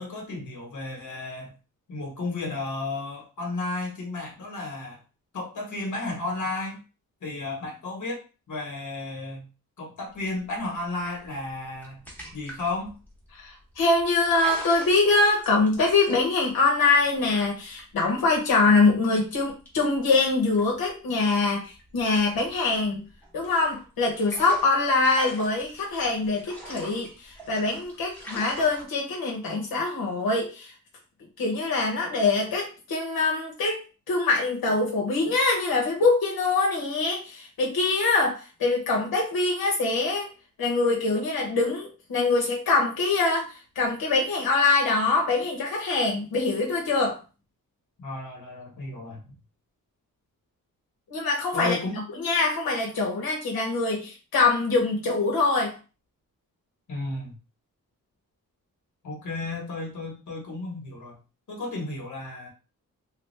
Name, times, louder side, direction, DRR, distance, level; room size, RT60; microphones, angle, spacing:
voice 1, 0.0-1.5 1.9-5.0 5.3-6.8 7.2-8.2 8.5-9.5 9.8-12.0 12.3-12.9 48.0-49.3 51.5-52.0 56.9-57.3 59.0-61.2 61.5-62.5, left 2 dB, 55° left, 0 dB, 1.3 m, -33 dB
sound 1, 10.1-21.3 21.6-28.8, right 1 dB, 5° left, 1.0 m, -44 dB
voice 2, 13.4-23.0 23.3-30.7 31.4-40.3 40.6-47.2 51.1-51.8 52.2-55.8, left 3 dB, 90° left, -1 dB, 1.0 m, -24 dB
3.3 x 2.3 x 3.2 m, 0.32 s
wide cardioid pair, 155°, 35 cm